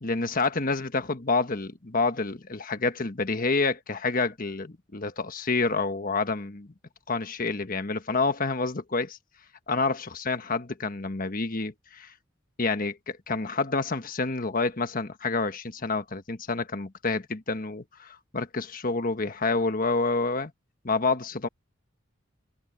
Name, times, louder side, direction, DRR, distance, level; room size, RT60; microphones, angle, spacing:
voice 1, 0.0-6.7 7.1-9.2 9.7-12.1 12.6-20.5 20.8-21.5, left 3 dB, 45° left, 1.3 m, -28 dB
head